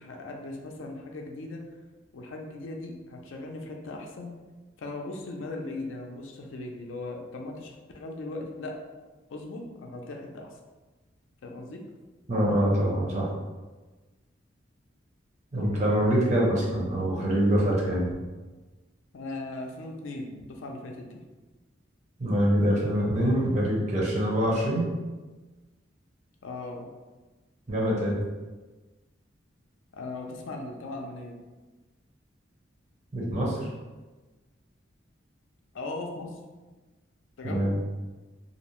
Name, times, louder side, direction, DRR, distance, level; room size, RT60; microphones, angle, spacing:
voice 1, 0.0-1.6 2.1-4.3 4.8-8.8 9.3-10.5 11.4-11.8 19.1-21.2 26.4-26.9 29.9-31.4 35.7-36.4 37.4-37.7, left 2 dB, 80° left, 1 dB, 0.4 m, -38 dB
voice 2, 12.3-13.2 15.5-18.1 22.2-24.9 27.7-28.1 33.1-33.6 37.4-37.7, equal, 35° right, -4 dB, 0.6 m, -24 dB
2.6 x 2.0 x 2.9 m, 1.2 s
head